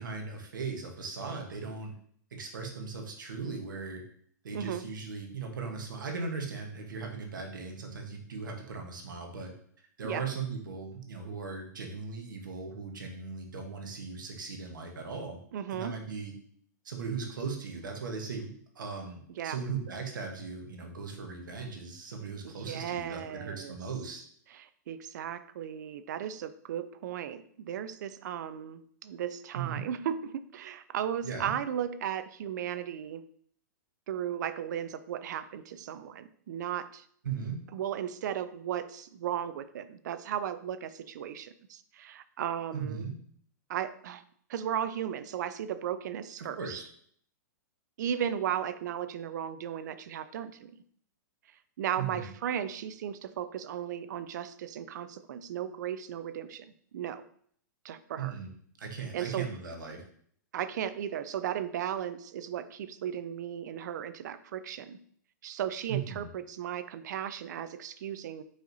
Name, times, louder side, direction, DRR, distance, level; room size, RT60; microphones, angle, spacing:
voice 1, 0.0-1.9 2.3-4.0 4.4-9.5 10.0-15.4 15.7-16.3 16.8-24.2 29.5-29.8 31.2-31.5 37.2-37.6 42.7-43.1 46.4-46.8 52.0-52.3 58.2-58.5 58.8-60.0 65.9-66.3, right 5 dB, 90° right, 3 dB, 1.1 m, -38 dB
voice 2, 4.5-4.9 10.0-10.2 15.5-16.0 19.4-19.6 22.4-23.7 24.5-33.2 34.1-37.0 37.7-43.1 43.7-44.2 44.5-46.8 48.0-50.7 51.8-56.7 56.9-57.3 57.8-58.4 59.1-59.5 60.5-65.0 65.4-68.4, right 9 dB, 65° right, 14 dB, 0.4 m, -36 dB
4.9 x 4.1 x 2.7 m, 0.62 s
hypercardioid pair, 145°, 10 cm